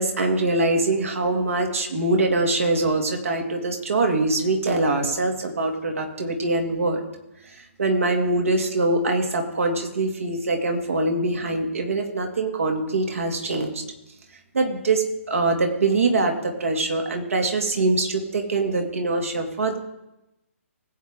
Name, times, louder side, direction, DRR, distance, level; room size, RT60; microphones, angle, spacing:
voice 1, 0.0-7.0 7.4-7.5 7.8-13.8 14.5-19.8, right 2 dB, 70° right, 3 dB, 2.5 m, -23 dB
20.5 x 8.3 x 3.8 m, 0.92 s
figure-of-eight pair, 140°, 8 cm